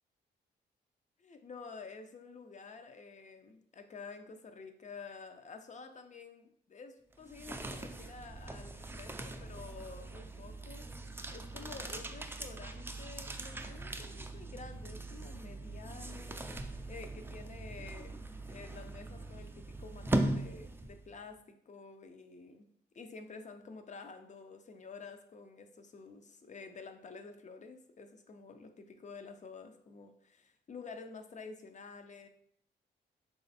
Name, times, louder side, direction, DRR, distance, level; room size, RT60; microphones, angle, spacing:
voice 1, 1.2-22.7 22.9-32.3, left 4 dB, 40° left, 7 dB, 0.5 m, -50 dB
sound 1, 7.1-21.2, right 2 dB, 10° right, 0.4 m, -40 dB
3.2 x 2.5 x 4.1 m, 0.68 s
cardioid pair, 70°, 19 cm